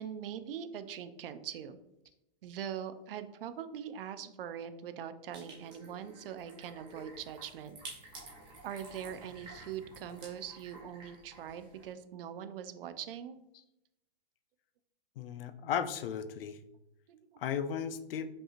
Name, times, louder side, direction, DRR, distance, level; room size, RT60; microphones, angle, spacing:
voice 1, 0.0-1.8 2.4-7.8 8.6-13.4 17.1-17.4, right 9 dB, 65° right, 10 dB, 0.5 m, -42 dB
sound 1, 5.3-11.9, right 2 dB, 15° right, 0.7 m, -51 dB
voice 2, 15.2-16.6 17.4-18.3, left 8 dB, 65° left, 12 dB, 0.5 m, -35 dB
5.3 x 2.9 x 2.4 m, 0.87 s
hypercardioid pair, 155°, 30 cm